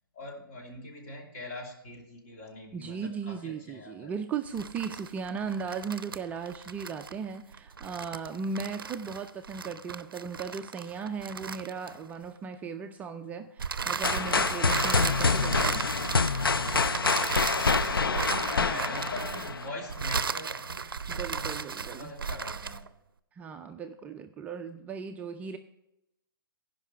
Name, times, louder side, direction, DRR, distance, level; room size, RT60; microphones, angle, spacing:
voice 1, 0.1-4.1 17.1-20.9 21.3-21.5 21.9-22.8, left 1 dB, 45° left, 1 dB, 2.5 m, -42 dB
voice 2, 2.7-15.9 18.6-18.9 21.1-22.1 23.4-25.6, right 6 dB, 15° right, 6 dB, 0.3 m, -37 dB
sound 1, 4.5-12.3 13.6-22.9, right 5 dB, 80° right, 0.5 m, -35 dB
sound 2, 14.0-19.9, left 4 dB, 85° left, 0.5 m, -27 dB
15.5 x 5.4 x 4.4 m, 0.88 s
figure-of-eight pair, 125°, 12 cm